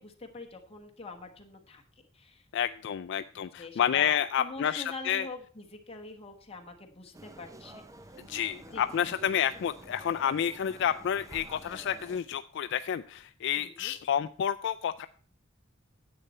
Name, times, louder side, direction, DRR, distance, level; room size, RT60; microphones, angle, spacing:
voice 1, 0.0-1.8 2.1-2.4 3.3-8.2 8.7-9.1 13.6-13.9, left 3 dB, 30° left, 2 dB, 1.4 m, -44 dB
voice 2, 2.5-5.3 8.3-15.1, left 9 dB, 65° left, 11 dB, 0.3 m, -30 dB
sound 1, 7.1-12.2, right 1 dB, 15° right, 0.5 m, -49 dB
10.0 x 7.9 x 4.3 m, 0.44 s
head